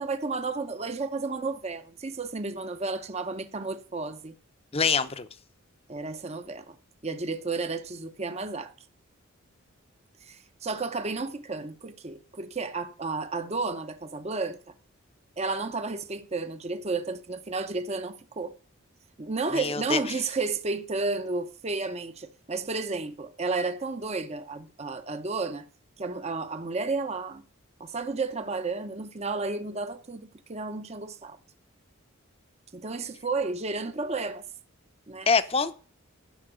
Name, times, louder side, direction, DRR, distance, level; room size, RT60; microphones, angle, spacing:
voice 1, 0.0-4.3 5.9-6.8 7.0-8.7 10.3-14.6 15.4-18.5 19.2-25.6 26.0-27.4 27.8-31.4 32.7-34.5 35.1-35.3, right 3 dB, 30° right, 0.8 m, -32 dB
voice 2, 4.7-5.3 19.5-20.0 35.3-35.7, left 5 dB, 30° left, 0.8 m, -24 dB
11.5 x 5.9 x 9.1 m
head